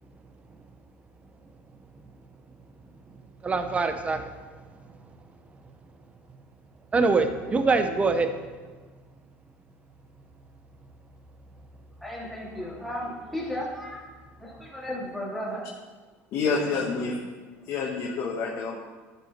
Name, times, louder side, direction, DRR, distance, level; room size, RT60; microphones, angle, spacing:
voice 1, 3.4-4.3 6.9-8.3, right 4 dB, 20° right, 8 dB, 0.8 m, -23 dB
voice 2, 12.0-14.0 14.4-15.7 16.4-16.6 16.9-17.1, equal, ahead, -5 dB, 2.8 m, -35 dB
voice 3, 16.3-17.2 17.6-18.8, left 4 dB, 55° left, -2 dB, 1.2 m, -28 dB
13.5 x 5.5 x 4.5 m, 1.3 s
cardioid pair, 125°, 6 cm